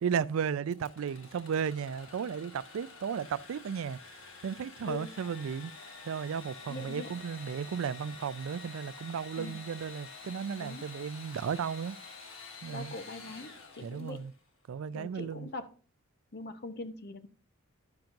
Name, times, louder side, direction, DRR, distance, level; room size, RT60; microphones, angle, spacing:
voice 1, 0.0-4.0 4.4-5.7 6.0-12.0 12.6-12.9 13.8-14.3 14.7-15.5, right 7 dB, 75° right, 0.3 m, -34 dB
Engine / Sawing, 0.7-14.4, left 4 dB, 70° left, 1.2 m, -49 dB
voice 2, 6.7-7.1 9.4-9.6 10.6-10.8 12.7-14.2 14.9-15.7 16.3-17.3, left 2 dB, 50° left, 0.7 m, -42 dB
11.5 x 5.8 x 2.6 m
head